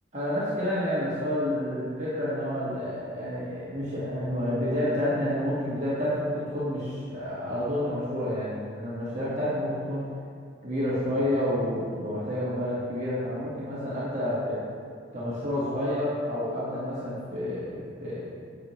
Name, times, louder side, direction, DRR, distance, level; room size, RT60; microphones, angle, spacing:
voice 1, 0.1-10.1 10.6-14.6 15.1-18.2, left 1 dB, 35° right, -9 dB, 1.6 m, -29 dB
9.7 x 7.2 x 3.1 m, 2.2 s
head